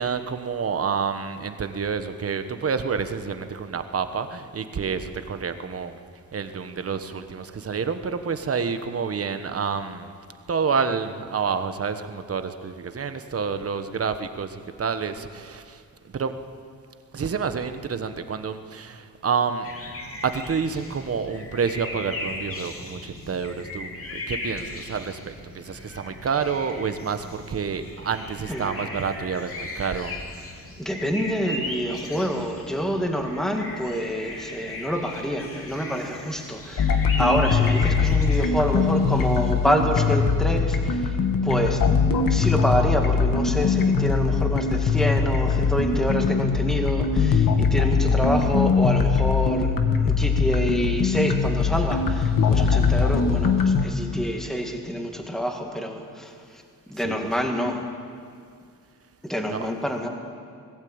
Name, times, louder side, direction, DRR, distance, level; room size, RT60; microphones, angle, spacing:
voice 1, 0.0-6.0 6.3-10.1 10.5-15.8 16.1-16.3 17.1-19.7 20.2-30.2 37.1-37.3 57.0-57.4 59.5-59.7, right 6 dB, 40° right, 9 dB, 1.2 m, -28 dB
sound 1, 19.6-38.5, left 2 dB, 40° left, 2.7 m, -37 dB
voice 2, 28.5-28.9 30.8-41.2 41.4-41.8 42.3-49.7 50.0-57.9 59.2-60.1, equal, ahead, 3 dB, 2.0 m, -27 dB
sound 2, 36.8-53.9, left 5 dB, 70° left, 1.8 m, -21 dB
20.5 x 15.5 x 8.8 m, 2.2 s
wide cardioid pair, 150°, 35 cm